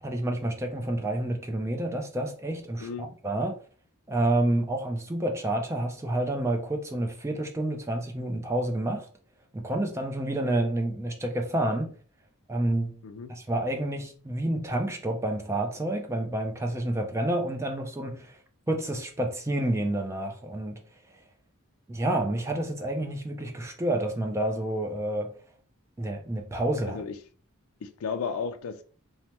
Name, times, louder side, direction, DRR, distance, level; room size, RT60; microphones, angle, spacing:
voice 1, 0.0-3.6 4.1-9.1 9.5-11.9 12.5-13.0 13.3-18.4 18.7-20.8 21.9-25.3 26.0-27.0, right 1 dB, 15° right, 0.3 m, -29 dB
voice 2, 2.8-3.1 13.0-13.3 26.9-27.1 27.8-28.8, left 5 dB, 70° left, 0.3 m, -34 dB
3.2 x 2.0 x 2.8 m
head